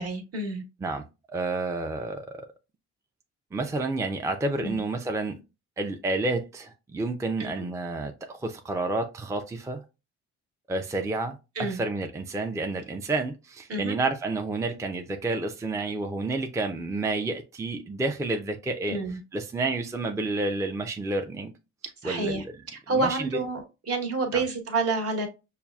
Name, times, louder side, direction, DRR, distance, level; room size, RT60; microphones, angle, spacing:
voice 1, 0.0-0.6 4.6-4.8 7.4-7.5 11.5-11.8 13.7-14.0 18.9-19.2 22.0-22.4 22.7-25.3, right 3 dB, 50° right, 1.2 m, -29 dB
voice 2, 0.8-2.5 3.5-5.4 5.8-9.8 10.7-19.0 19.3-21.5 22.0-22.4 22.9-23.4 24.3-24.4, right 2 dB, 10° right, 0.4 m, -30 dB
5.5 x 2.3 x 2.3 m
cardioid pair, 90°, 30 cm